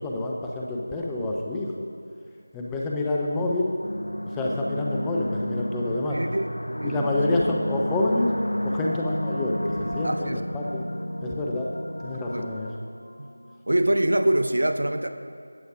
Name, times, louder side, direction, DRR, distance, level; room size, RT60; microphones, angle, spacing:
voice 1, 0.0-1.9 2.5-3.7 4.4-6.2 6.8-8.3 8.7-10.8 11.2-11.7 12.0-12.7, left 2 dB, 5° left, -2 dB, 0.5 m, -27 dB
sound 1, 3.8-13.6, equal, 85° left, 0.5 m, -31 dB
voice 2, 6.1-6.5 6.8-7.1 10.0-10.4 12.3-12.5 13.2-13.3 13.7-15.1, right 1 dB, 65° right, 7 dB, 0.6 m, -24 dB
8.4 x 8.0 x 4.9 m, 2.4 s
figure-of-eight pair, 170°, 0 cm